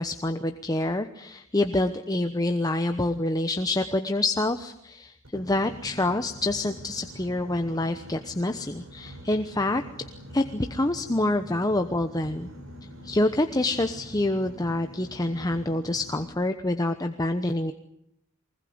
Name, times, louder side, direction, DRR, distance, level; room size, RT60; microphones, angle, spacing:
voice 1, 0.0-9.8 10.3-12.5 13.0-17.7, left 2 dB, 20° left, 7 dB, 1.0 m, -27 dB
Boat Water vehicle, 5.2-16.2, equal, 75° right, 7.0 m, -45 dB
24.0 x 20.5 x 9.6 m, 0.76 s
head